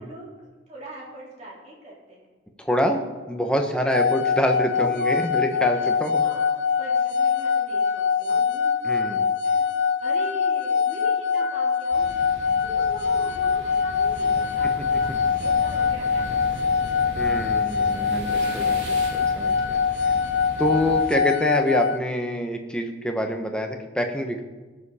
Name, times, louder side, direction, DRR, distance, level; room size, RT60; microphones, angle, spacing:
voice 1, 0.0-2.3 4.8-5.2 5.5-5.6 5.9-8.7 9.4-9.7 10.0-16.4, right 1 dB, 35° right, -5 dB, 3.8 m, -42 dB
voice 2, 2.6-3.0 3.3-6.2 8.3-8.4 8.8-9.3 17.2-20.2 20.6-24.4, equal, 5° left, 3 dB, 1.1 m, -26 dB
sound 1, 3.9-22.0, left 5 dB, 85° left, 0.6 m, -23 dB
sound 2, 11.9-21.1, equal, 80° right, 2.6 m, -37 dB
19.5 x 7.0 x 4.3 m, 1.3 s
head